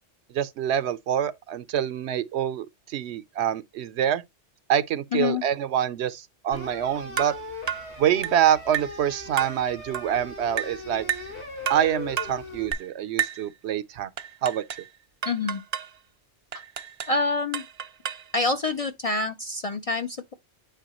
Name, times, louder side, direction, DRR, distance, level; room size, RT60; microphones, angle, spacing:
voice 1, 0.3-4.2 4.7-7.3 8.0-11.1 11.7-14.1 14.4-14.6, right 10 dB, 70° right, 0.8 m, -26 dB
voice 2, 5.1-5.4 15.2-15.6 16.5-16.6 17.1-17.6 18.3-20.3, left 3 dB, 45° left, 0.5 m, -26 dB
sound 1, 6.5-12.7, left 2 dB, 75° left, 3.3 m, -39 dB
sound 2, 7.2-7.4 7.7-7.9 8.2-8.4 8.7-9.0 9.4-9.6 9.9-10.1 10.6-10.8 11.1-11.3 11.7-11.9 12.2-12.4 12.7-12.9 13.2-13.5 14.2-14.9 15.2-15.9 16.5-17.2 17.5-18.3, right 9 dB, 55° right, 0.5 m, -31 dB
9.1 x 4.6 x 3.0 m
omnidirectional pair, 1.2 m